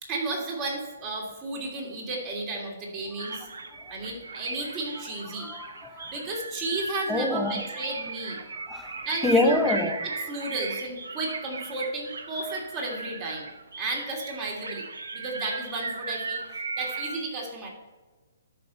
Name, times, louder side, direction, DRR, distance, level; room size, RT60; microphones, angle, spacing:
voice 1, 0.0-3.5 3.9-5.5 6.1-8.4 9.0-9.9 10.3-13.5 13.8-14.9 15.1-17.7, right 2 dB, 30° right, 2.9 m, -33 dB
sound 1, 3.2-17.2, right 4 dB, 75° right, 1.0 m, -37 dB
voice 2, 5.3-6.1 7.1-7.6 8.6-10.1, left 2 dB, 5° left, 0.8 m, -27 dB
12.5 x 5.7 x 4.4 m
hypercardioid pair, 135°, 0 cm